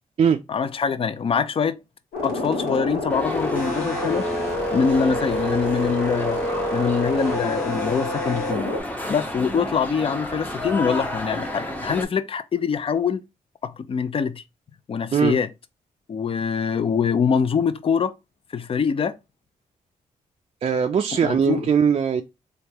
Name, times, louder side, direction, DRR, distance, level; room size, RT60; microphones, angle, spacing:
voice 1, 0.5-1.8 2.2-4.3 4.7-6.4 6.7-8.7 9.1-13.2 13.6-14.4 14.9-15.5 16.1-18.1 18.5-19.2 21.2-21.6, left 6 dB, 40° left, 0.4 m, -24 dB
sound 1, 2.1-8.8, left 1 dB, 90° left, 1.2 m, -27 dB
sound 2, 3.1-12.0, left 1 dB, 10° left, 0.8 m, -31 dB
voice 2, 20.6-22.2, right 7 dB, 40° right, 0.4 m, -20 dB
3.5 x 2.3 x 2.8 m
cardioid pair, 70°, 15 cm